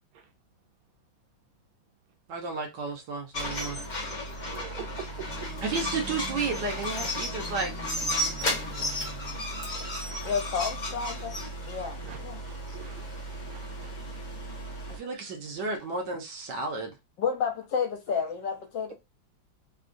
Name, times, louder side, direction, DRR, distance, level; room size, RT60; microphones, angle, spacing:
voice 1, 2.3-3.8 5.6-7.7 14.9-17.0, right 4 dB, 65° right, 1.4 m, -32 dB
sound 1, 3.3-15.0, equal, 50° left, 0.5 m, -34 dB
voice 2, 4.5-5.5 12.0-12.2 12.4-13.9 15.1-15.4, right 8 dB, 85° right, 1.4 m, -45 dB
sound 2, 4.8-9.6, right 1 dB, ahead, 0.9 m, -46 dB
voice 3, 10.2-11.3 11.6-12.4 17.2-18.9, left 6 dB, 70° left, 1.4 m, -30 dB
3.6 x 2.3 x 2.5 m
omnidirectional pair, 2.2 m